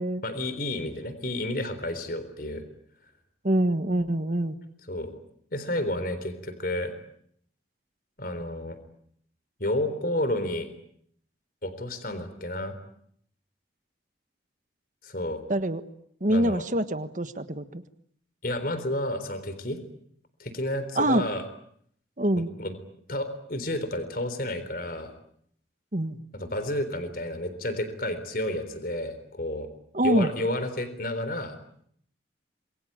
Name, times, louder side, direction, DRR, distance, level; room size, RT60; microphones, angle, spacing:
voice 1, 0.2-2.6 4.9-5.2 5.5-6.9 8.2-8.8 9.6-10.7 11.6-12.8 15.0-15.4 16.3-16.6 18.4-19.8 20.4-21.4 22.6-22.8 23.1-25.1 26.3-29.7 30.0-31.6, left 1 dB, 50° left, 11 dB, 3.9 m, -31 dB
voice 2, 3.4-4.5 15.5-15.8 16.2-17.8 20.9-21.3 22.2-22.5 25.9-26.2 29.9-30.3, right 1 dB, 40° right, 10 dB, 1.5 m, -25 dB
27.0 x 23.0 x 8.9 m, 0.67 s
head